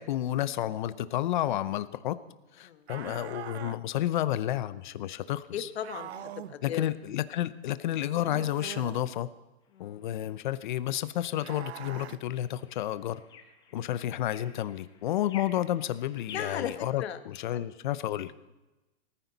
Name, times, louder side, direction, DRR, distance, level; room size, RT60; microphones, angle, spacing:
voice 1, 0.0-2.2 2.6-5.7 6.6-9.3 9.8-13.2 13.7-18.3, left 12 dB, 45° left, 14 dB, 0.7 m, -31 dB
sound 1, 2.9-3.8 5.8-6.6 8.2-9.0 11.4-12.2, right 11 dB, 75° right, 0.9 m, -42 dB
voice 2, 5.5-6.8 9.7-10.1 13.7-13.9 16.3-16.7 17.0-17.2 17.5-17.6, left 10 dB, 70° left, 10 dB, 1.4 m, -37 dB
sound 2, 9.6-16.7, left 6 dB, 15° left, 1.2 m, -51 dB
19.5 x 14.5 x 4.1 m, 1.1 s
hypercardioid pair, 170°, 33 cm